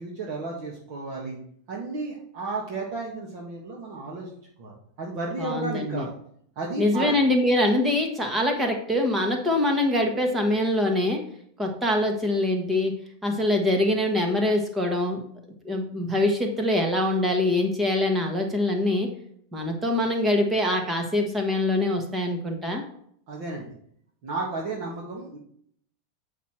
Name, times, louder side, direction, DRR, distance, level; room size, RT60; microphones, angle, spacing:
voice 1, 0.0-1.4 1.7-4.3 4.6-6.1 6.5-7.1 23.3-23.7 24.2-25.4, right 3 dB, 50° right, -2 dB, 1.7 m, -33 dB
voice 2, 5.4-6.1 6.8-11.2 11.6-12.9 13.2-15.2 15.6-19.1 19.5-22.8, left 1 dB, 10° right, 3 dB, 1.3 m, -24 dB
8.2 x 5.9 x 4.4 m, 0.65 s
supercardioid pair, 165°, 0 cm